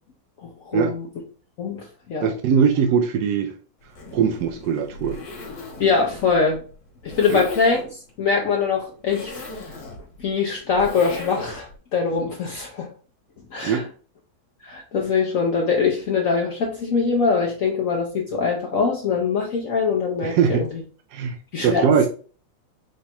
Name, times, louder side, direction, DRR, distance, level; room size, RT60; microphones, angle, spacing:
voice 1, 0.4-1.1 1.6-1.8 2.1-2.3 5.8-6.6 7.0-7.8 8.2-9.5 10.2-12.9 13.5-13.8 14.6-20.6 21.5-22.1, left 5 dB, 70° left, 0.7 m, -23 dB
voice 2, 2.2-3.5 4.1-5.2 7.3-7.4 13.6-13.9 20.2-20.6 21.1-21.4 21.6-22.1, right 7 dB, 80° right, 0.9 m, -20 dB
Zipper (clothing), 3.8-11.8, left 3 dB, 55° left, 1.9 m, -38 dB
5.0 x 4.2 x 2.2 m
omnidirectional pair, 2.3 m